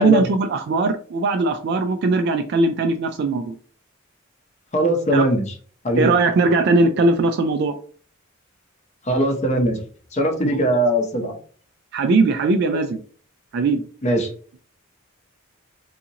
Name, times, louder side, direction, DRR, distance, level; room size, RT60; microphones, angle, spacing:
voice 1, 0.0-3.5 5.1-5.3 6.0-7.8 10.5-10.7 11.9-13.0 13.5-13.8, right 3 dB, 55° right, 6 dB, 0.3 m, -19 dB
voice 2, 4.7-5.5 5.8-6.1 9.1-9.8 10.1-11.4 14.0-14.3, equal, 35° left, 3 dB, 0.7 m, -20 dB
3.8 x 2.4 x 2.8 m, 0.44 s
head